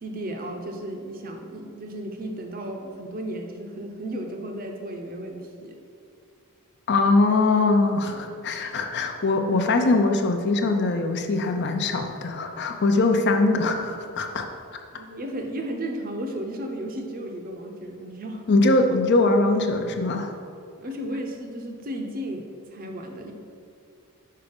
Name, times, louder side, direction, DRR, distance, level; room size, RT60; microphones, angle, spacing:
voice 1, 0.0-5.8 14.9-18.4 20.8-23.3, right 1 dB, 40° right, 3 dB, 0.7 m, -34 dB
voice 2, 6.9-14.5 18.5-20.3, left 2 dB, 50° left, 5 dB, 0.5 m, -22 dB
5.6 x 4.8 x 5.2 m, 2.3 s
head